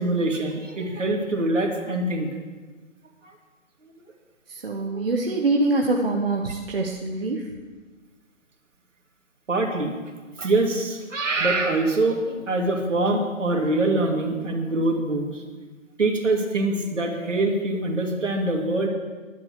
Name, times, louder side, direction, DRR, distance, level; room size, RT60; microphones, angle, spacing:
voice 1, 0.0-2.3 3.2-3.3 4.9-5.0 9.5-10.0 10.4-15.6 16.0-18.9, right 2 dB, 65° right, 2 dB, 2.6 m, -24 dB
voice 2, 4.5-7.5, right 2 dB, 45° right, 1 dB, 1.1 m, -24 dB
11.5 x 8.3 x 7.6 m, 1.3 s
figure-of-eight pair, 165°, 41 cm